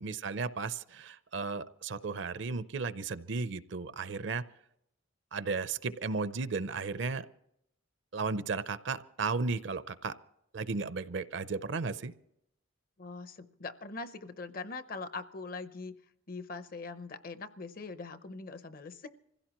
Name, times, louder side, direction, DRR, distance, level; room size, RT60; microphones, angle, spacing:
voice 1, 0.0-4.4 5.3-7.3 8.1-10.1 10.5-12.1, right 4 dB, 60° right, 0.6 m, -34 dB
voice 2, 13.0-15.9 16.3-19.1, left 3 dB, 45° left, 0.6 m, -42 dB
25.5 x 16.0 x 3.0 m
head